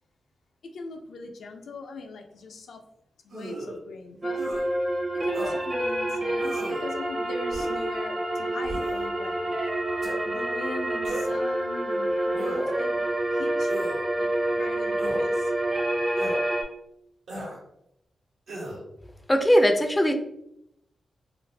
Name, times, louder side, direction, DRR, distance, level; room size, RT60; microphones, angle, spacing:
voice 1, 0.6-2.8 3.2-4.4 5.2-9.6 10.2-13.1 13.3-13.9 14.2-15.5, left 3 dB, 80° left, 3 dB, 0.4 m, -40 dB
sound 1, 3.3-3.8 4.4-4.6 5.3-5.6 6.4-6.8 7.5-7.9 8.6-9.0 10.0-10.2 11.0-11.4 12.3-12.8 13.7-14.0 15.0-15.3 16.2-16.4 17.3-17.6 18.5-18.8, right 1 dB, 80° right, 1.1 m, -36 dB
sound 2, 4.2-16.6, right 1 dB, 35° right, 0.7 m, -28 dB
voice 2, 19.3-20.1, equal, 15° left, 5 dB, 0.4 m, -19 dB
2.5 x 2.5 x 3.2 m, 0.79 s
cardioid pair, 70°, 0 cm